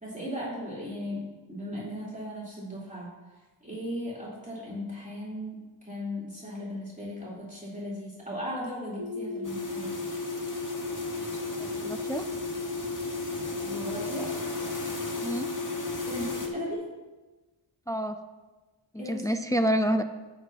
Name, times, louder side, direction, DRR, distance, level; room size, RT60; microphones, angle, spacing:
voice 1, 0.0-9.9 13.6-14.3 16.0-16.8 19.0-19.3 19.5-19.6, left 1 dB, 15° right, -8 dB, 3.8 m, -37 dB
sound 1, 9.0-16.7, left 3 dB, 90° left, 1.7 m, -34 dB
sound 2, 9.4-16.5, left 2 dB, 40° left, 1.7 m, -40 dB
voice 2, 11.6-12.2 15.2-15.5 17.9-18.2 18.9-20.0, equal, 5° left, 6 dB, 0.6 m, -28 dB
17.0 x 8.0 x 3.0 m, 1.2 s
wide cardioid pair, 60°, 49 cm